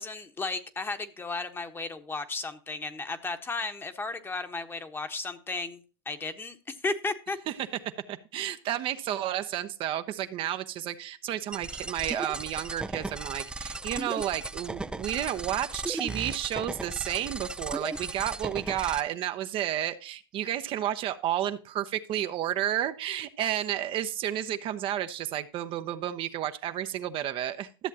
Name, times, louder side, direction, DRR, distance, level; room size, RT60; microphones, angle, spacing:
voice 1, 0.0-5.8 6.1-7.4, left 3 dB, 20° left, 8 dB, 1.2 m, -34 dB
voice 2, 8.1-27.7, right 11 dB, 45° right, 9 dB, 0.8 m, -31 dB
sound 1, 11.5-19.0, right 2 dB, 5° right, 0.4 m, -36 dB
13.0 x 7.2 x 2.8 m, 0.34 s
hypercardioid pair, 105°, 12 cm